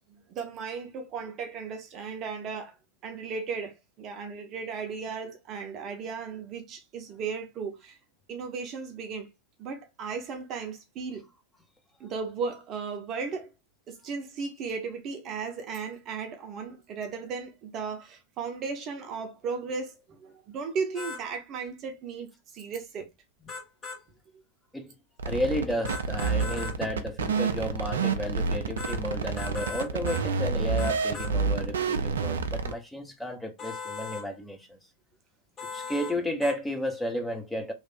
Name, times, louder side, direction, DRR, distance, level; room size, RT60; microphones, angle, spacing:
voice 1, 0.1-2.8 3.0-8.0 8.3-9.3 9.6-11.3 12.0-13.5 13.9-23.1 35.7-35.8, right 5 dB, 35° right, 0.8 m, -36 dB
sound 1, 21.0-21.2 23.5-24.0 25.9-26.8 28.8-29.0 29.4-30.3 30.8-31.3 33.6-34.3 35.6-36.2 36.4-36.6, left 4 dB, 25° left, 1.3 m, -38 dB
voice 2, 25.2-34.8 35.7-37.7, left 1 dB, 5° left, 0.8 m, -32 dB
sound 2, 25.2-32.7, right 5 dB, 65° right, 0.5 m, -28 dB
3.1 x 2.5 x 4.2 m
figure-of-eight pair, 90°, 0 cm